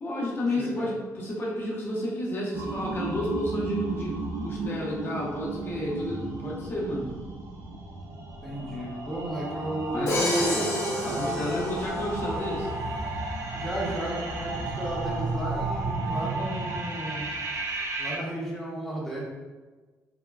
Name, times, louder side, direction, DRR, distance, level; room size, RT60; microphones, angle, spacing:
voice 1, 0.0-7.1 9.9-10.7 11.1-12.7, left 1 dB, 40° left, -4 dB, 0.9 m, -31 dB
sound 1, 2.5-18.2, right 2 dB, 65° right, 0.4 m, -33 dB
voice 2, 8.4-11.8 13.5-17.3 18.0-19.2, right 1 dB, 5° left, -5 dB, 0.8 m, -34 dB
Crash cymbal, 10.1-12.3, left 1 dB, 75° left, 0.9 m, -31 dB
3.5 x 2.1 x 2.3 m, 1.3 s
cardioid pair, 105°, 6 cm